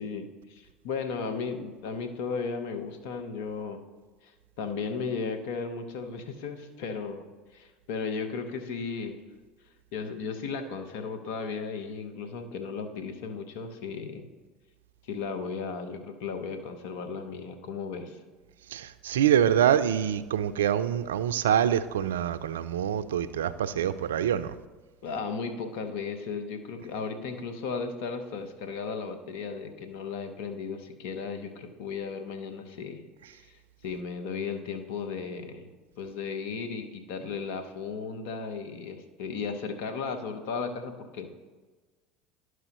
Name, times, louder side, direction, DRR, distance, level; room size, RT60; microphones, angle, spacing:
voice 1, 0.0-3.8 4.2-7.2 7.5-9.2 9.9-14.3 15.0-18.2 25.0-33.0 33.4-35.7 36.0-41.4, left 5 dB, 70° left, 7 dB, 0.9 m, -35 dB
voice 2, 18.7-24.5, right 9 dB, 80° right, 13 dB, 0.3 m, -25 dB
12.0 x 4.7 x 3.0 m, 1.3 s
hypercardioid pair, 75°, 0 cm